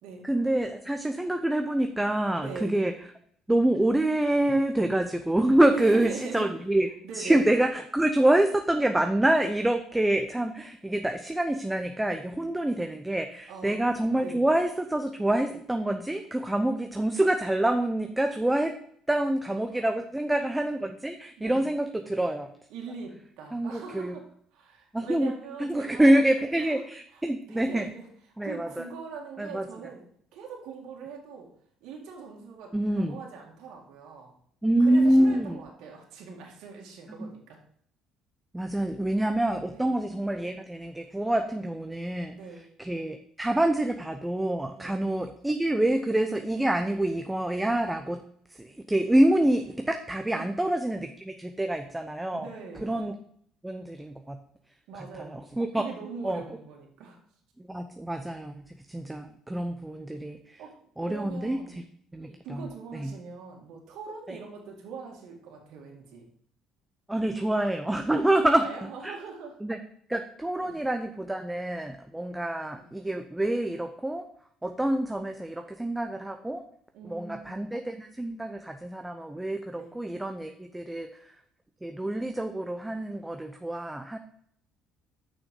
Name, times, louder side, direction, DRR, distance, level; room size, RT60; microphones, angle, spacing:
voice 1, 0.2-2.9 3.5-6.9 7.1-18.7 19.1-22.5 23.5-24.1 24.9-25.3 25.6-27.9 28.4-28.9 29.4-29.6 32.7-33.2 34.6-35.6 37.2-37.3 38.5-42.3 42.8-48.2 48.5-52.5 52.8-53.1 53.6-54.4 54.9-55.8 56.2-56.4 57.6-60.6 61.0-61.8 62.1-63.1 64.3-64.4 67.1-68.6 69.0-69.1 69.6-69.8 70.1-74.3 74.6-76.6 77.0-81.3 81.8-84.2, right 1 dB, 10° right, 6 dB, 0.7 m, -26 dB
voice 2, 2.4-2.7 5.7-6.5 7.0-7.5 13.5-13.9 14.2-14.4 19.5-20.0 21.4-21.7 22.7-24.2 24.5-26.1 26.6-26.8 27.1-27.2 27.5-28.1 28.4-30.0 30.3-31.5 31.8-34.3 34.8-37.6 39.7-40.0 42.3-42.7 44.7-45.0 50.3-50.5 52.3-53.0 54.9-57.2 60.6-60.7 61.0-61.7 62.4-66.3 68.4-69.6 70.6-70.8 72.7-73.0 76.9-77.7 79.7-80.0, right 5 dB, 75° right, 0 dB, 2.1 m, -42 dB
6.5 x 6.1 x 5.3 m, 0.65 s
cardioid pair, 100°, 0 cm